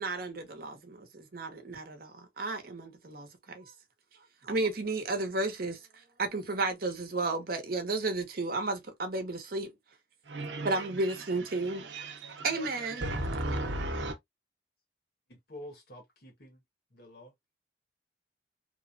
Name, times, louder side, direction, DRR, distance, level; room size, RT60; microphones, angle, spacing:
voice 1, 0.0-3.7 4.4-9.7 10.6-12.1 12.4-13.0, right 3 dB, 55° right, 0.8 m, -33 dB
voice 2, 10.2-14.2, right 1 dB, 90° right, 0.8 m, -36 dB
voice 3, 15.3-16.6 16.9-17.3, left 1 dB, 60° left, 1.2 m, -48 dB
3.1 x 2.1 x 2.5 m
head